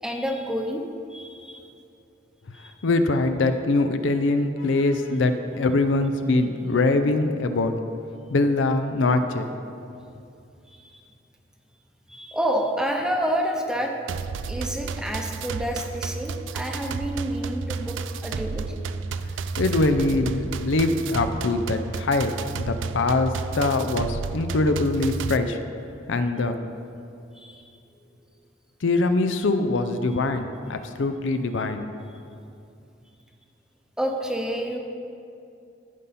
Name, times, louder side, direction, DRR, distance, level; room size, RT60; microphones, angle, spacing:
voice 1, 0.0-0.8 1.1-1.7 2.5-2.7 10.7-11.0 12.1-13.9 14.5-18.0 18.2-18.7 27.3-27.7 34.0-34.8, equal, 5° right, 2 dB, 0.8 m, -29 dB
voice 2, 2.8-7.7 8.3-9.5 19.6-25.6 26.1-26.6 28.8-31.8, left 2 dB, 75° left, 8 dB, 0.5 m, -23 dB
sound 1, 14.1-25.4, right 4 dB, 75° right, 0.4 m, -32 dB
15.0 x 5.4 x 4.2 m, 2.6 s
head